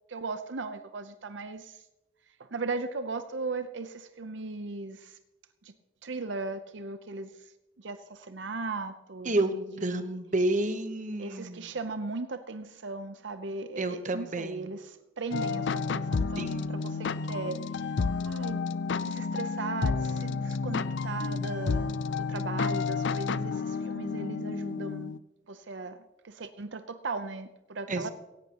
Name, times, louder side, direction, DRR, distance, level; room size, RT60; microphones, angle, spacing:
voice 1, 0.1-1.6 2.5-5.0 6.0-7.3 7.8-8.0 8.3-9.3 9.9-10.0 11.2-13.8 14.1-14.8 15.2-16.5 16.8-16.9 17.3-17.6 18.3-18.6 19.0-21.9 22.2-23.5 23.8-25.1 25.5-25.9 26.4-28.1, right 3 dB, 75° right, 10 dB, 0.7 m, -37 dB
voice 2, 9.2-11.8 13.8-14.8 16.3-16.7 27.9-28.1, right 2 dB, 40° right, 8 dB, 1.1 m, -30 dB
sound 1, 15.3-25.2, left 4 dB, 70° left, 0.5 m, -31 dB
17.0 x 16.5 x 3.0 m, 1.0 s
head